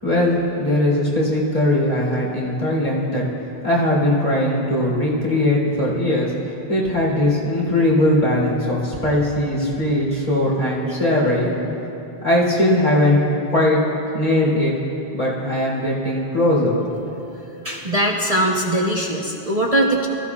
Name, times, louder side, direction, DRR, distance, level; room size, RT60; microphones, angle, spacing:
voice 1, 0.0-3.2 3.6-6.3 6.7-11.5 12.2-13.2 13.5-13.8 14.1-14.7 15.1-16.8, left 1 dB, 40° left, -7 dB, 3.2 m, -19 dB
voice 2, 17.6-20.1, right 1 dB, 35° right, -2 dB, 1.1 m, -20 dB
24.0 x 14.5 x 2.4 m, 2.9 s
omnidirectional pair, 1.0 m